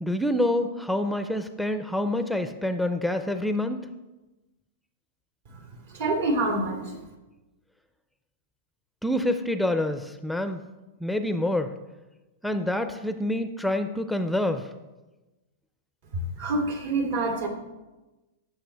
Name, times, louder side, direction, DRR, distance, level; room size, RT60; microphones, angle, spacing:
voice 1, 0.0-3.8 9.0-10.6 11.0-11.7 12.4-14.7, left 1 dB, ahead, 8 dB, 0.5 m, -27 dB
voice 2, 5.9-7.0 16.1-17.5, right 2 dB, 70° right, 2 dB, 2.9 m, -26 dB
15.5 x 6.0 x 3.4 m, 1.1 s
hypercardioid pair, 130°, 0 cm